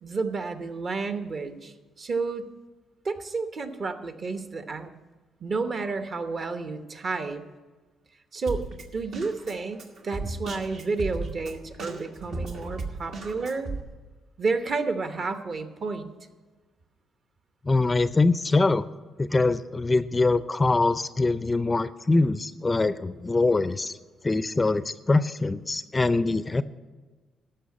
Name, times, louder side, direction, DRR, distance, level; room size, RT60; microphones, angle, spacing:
voice 1, 0.0-2.5 3.0-4.9 5.4-7.4 8.3-8.6 8.9-13.7 14.4-16.1, right 4 dB, 45° right, 9 dB, 1.0 m, -31 dB
Drum kit, 8.5-13.8, right 3 dB, 70° right, 1.4 m, -35 dB
voice 2, 17.6-18.8 19.2-24.0 24.2-26.6, left 3 dB, 20° left, 14 dB, 0.4 m, -23 dB
13.5 x 5.8 x 8.5 m, 1.3 s
cardioid pair, 90°, 0 cm